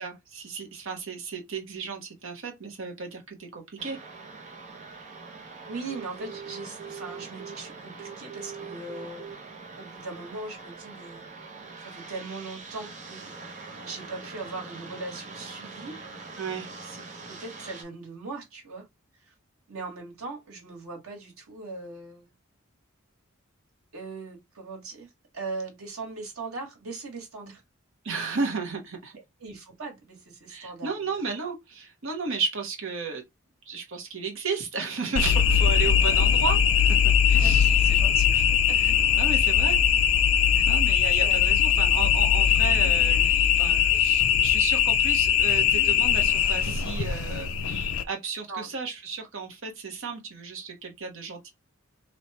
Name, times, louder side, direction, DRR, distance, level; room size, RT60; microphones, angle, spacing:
voice 1, 0.0-4.0 16.4-16.7 28.0-29.1 30.5-33.2 33.7-36.6 37.3-37.9 38.3-38.4 38.8-39.8 40.7-51.5, right 4 dB, 65° right, 1.0 m, -34 dB
sound 1, 3.8-17.8, right 4 dB, 35° right, 0.8 m, -43 dB
voice 2, 5.6-9.3 9.7-11.2 11.8-16.0 16.8-17.0 17.3-18.8 19.3-19.4 19.7-22.3 23.9-25.1 25.3-27.6 29.4-31.0 37.4-38.3 40.5-40.7 41.2-41.4 48.5-48.7, right 3 dB, 85° right, 1.6 m, -39 dB
sound 2, 35.2-48.0, left 8 dB, 75° left, 0.5 m, -21 dB
3.2 x 2.3 x 4.1 m
head